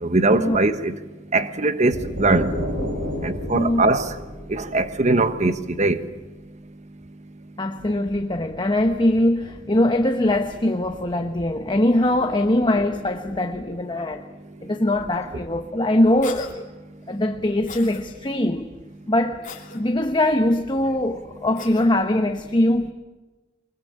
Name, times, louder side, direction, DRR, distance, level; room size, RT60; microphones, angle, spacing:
voice 1, 0.0-0.9 1.3-2.5 3.2-4.1 4.5-6.0, right 2 dB, 35° right, 1.3 m, -21 dB
sound 1, 1.9-5.7, equal, 65° right, 5.3 m, -31 dB
voice 2, 3.5-3.9 7.6-14.2 14.6-16.7 17.1-18.7 19.1-19.4 19.7-22.9, left 1 dB, 25° left, 1.0 m, -22 dB
Cough, 16.2-16.5 17.7-18.0 19.4-19.8 21.6-21.9, left 5 dB, 40° left, 3.0 m, -37 dB
24.0 x 22.0 x 8.6 m
head